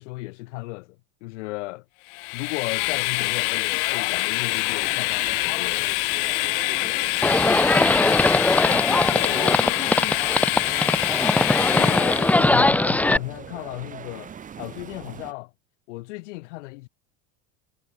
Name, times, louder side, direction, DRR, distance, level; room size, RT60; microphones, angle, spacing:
voice 1, 0.0-1.8 2.3-5.9 8.7-9.1 11.7-15.5 15.9-16.9, left 22 dB, 90° left, 2.6 m, -35 dB
Train, 2.1-12.6, left 36 dB, 55° left, 2.6 m, -25 dB
sound 1, 4.8-15.3, right 8 dB, 20° right, 5.4 m, -43 dB
voice 2, 6.6-8.4 8.6-10.8, left 15 dB, 40° left, 4.1 m, -38 dB
Livestock farm animals working animals, 7.2-13.2, left 2 dB, 5° left, 1.0 m, -20 dB
cardioid pair, 165°, 36 cm